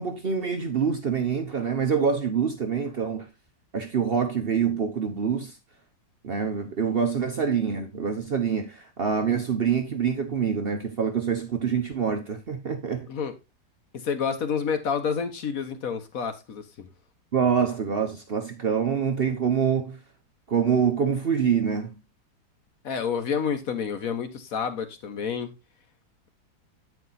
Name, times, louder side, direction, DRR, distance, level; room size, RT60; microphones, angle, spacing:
voice 1, 0.0-3.3 3.7-5.5 6.2-13.1 17.3-20.0 20.5-21.9, right 6 dB, 55° right, 0.6 m, -25 dB
voice 2, 13.9-16.9 22.8-25.5, left 6 dB, 55° left, 1.2 m, -29 dB
8.8 x 4.8 x 4.0 m
omnidirectional pair, 2.0 m